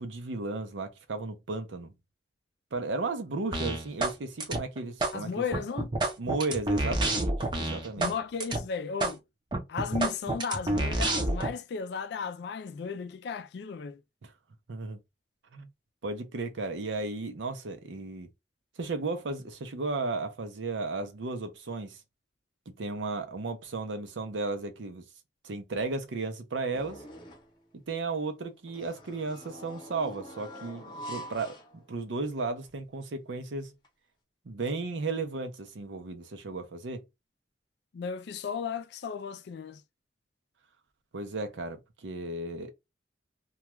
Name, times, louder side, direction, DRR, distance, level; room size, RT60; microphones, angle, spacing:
voice 1, 0.0-1.9 2.7-5.4 6.2-8.1 14.7-15.0 15.5-15.7 16.0-18.3 18.8-22.0 22.8-25.0 25.4-27.0 27.7-33.7 34.5-37.0 41.1-42.7, right 3 dB, 80° right, 0.6 m, -34 dB
sound 1, 3.5-4.2 4.4-5.1 5.5-8.1 8.4-8.6 9.0-9.1 9.5-11.5, right 2 dB, 25° right, 0.5 m, -28 dB
voice 2, 5.1-5.9 8.0-9.2 9.7-14.0 37.9-39.8, left 5 dB, 65° left, 0.3 m, -35 dB
sound 2, 26.7-27.6 28.7-32.3 32.7-32.8 33.8-33.9, equal, 25° left, 0.7 m, -45 dB
2.3 x 2.2 x 2.9 m
head